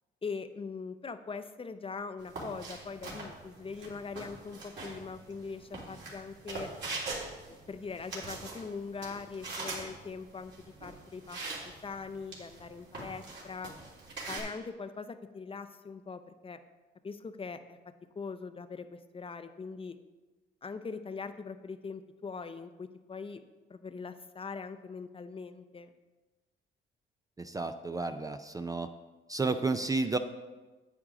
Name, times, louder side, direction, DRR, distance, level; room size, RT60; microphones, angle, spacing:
voice 1, 0.2-6.7 7.5-11.4 11.8-13.7 14.3-16.6 17.0-17.8 18.2-20.0 20.6-23.4 23.7-25.9, left 4 dB, 30° left, 10 dB, 0.6 m, -41 dB
sound 1, 2.2-14.4, right 3 dB, 65° right, 3.3 m, -43 dB
voice 2, 27.4-28.9 29.3-30.2, right 3 dB, 20° right, 9 dB, 0.4 m, -31 dB
9.6 x 8.6 x 3.8 m, 1.2 s
cardioid pair, 90°, 20 cm